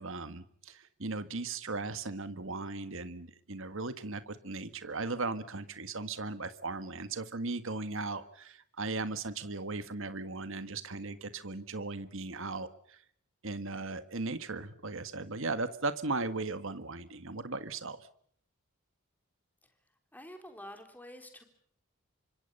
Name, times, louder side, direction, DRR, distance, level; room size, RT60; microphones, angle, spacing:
voice 1, 0.0-13.0 13.4-18.1, right 3 dB, 60° right, 11 dB, 1.7 m, -37 dB
voice 2, 20.1-21.4, left 1 dB, 10° left, 5 dB, 3.6 m, -48 dB
29.5 x 25.0 x 5.5 m, 0.63 s
head